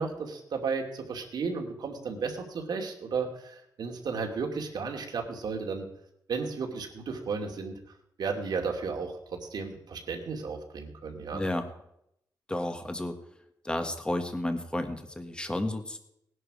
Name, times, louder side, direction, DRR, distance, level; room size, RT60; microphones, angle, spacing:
voice 1, 0.0-5.9 6.3-7.8 8.2-9.1 9.5-11.5, right 5 dB, 75° right, 2 dB, 2.6 m, -33 dB
voice 2, 11.3-11.7 12.5-13.1 13.6-16.0, left 1 dB, 15° left, 7 dB, 1.6 m, -32 dB
18.5 x 11.0 x 4.9 m, 0.76 s
wide cardioid pair, 115°, 7 cm